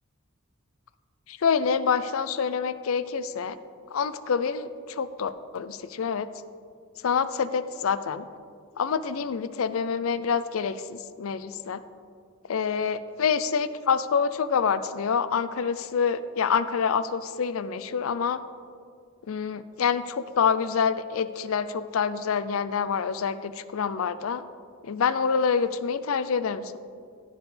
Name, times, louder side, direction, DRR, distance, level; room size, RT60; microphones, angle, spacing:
voice 1, 1.3-3.6 3.9-6.3 7.0-8.3 8.8-11.8 12.5-18.4 19.3-24.4 24.8-26.8, left 6 dB, 85° left, 14 dB, 0.5 m, -27 dB
15.0 x 7.2 x 3.3 m, 2.2 s
head